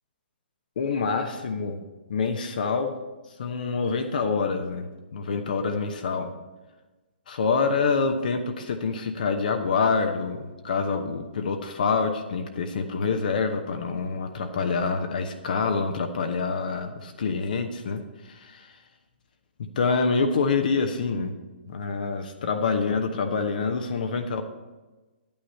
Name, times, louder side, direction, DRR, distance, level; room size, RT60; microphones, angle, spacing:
voice 1, 0.8-1.8 2.1-3.0 3.4-6.3 7.3-18.7 19.8-21.4 21.7-24.4, left 4 dB, 55° left, 5 dB, 0.9 m, -26 dB
11.0 x 8.9 x 4.4 m, 1.2 s
figure-of-eight pair, 125°, 6 cm